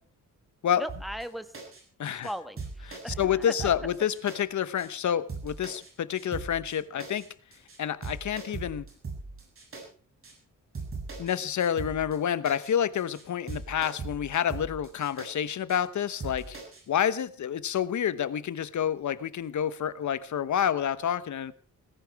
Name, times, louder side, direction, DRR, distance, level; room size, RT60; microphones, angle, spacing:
voice 1, 0.8-1.5 2.1-3.7, equal, ahead, 1.4 m, -38 dB
sound 1, 0.9-1.2 1.5-1.8 2.1-2.3 2.6-4.4 4.8-4.9 5.3-5.9 6.1-6.7 7.0-7.2 7.5-7.8 8.0-9.8 10.2-10.3 10.7-11.3 11.6-12.2 12.4-12.7 13.0-13.2 13.5-15.3 15.7-15.8 16.2-16.8, right 4 dB, 40° right, 7.8 m, -39 dB
voice 2, 2.0-2.3 2.9-7.3 7.8-8.8 11.2-16.6 16.9-21.5, left 9 dB, 65° left, 1.0 m, -28 dB
18.5 x 16.0 x 4.7 m
wide cardioid pair, 145°, 31 cm